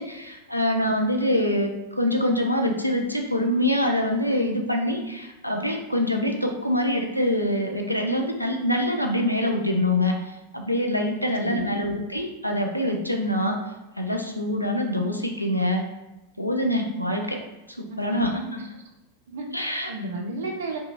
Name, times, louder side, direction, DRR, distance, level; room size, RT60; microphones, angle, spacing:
voice 1, 0.0-13.6 14.0-15.8 16.4-17.4 17.8-18.7 19.5-19.9, left 1 dB, 90° left, 2 dB, 0.3 m, -25 dB
voice 2, 11.4-11.8 17.9-18.4 19.3-19.5 19.9-20.8, right 2 dB, 60° right, 2 dB, 0.5 m, -32 dB
2.8 x 2.3 x 2.7 m, 0.99 s
figure-of-eight pair, 90°, 0 cm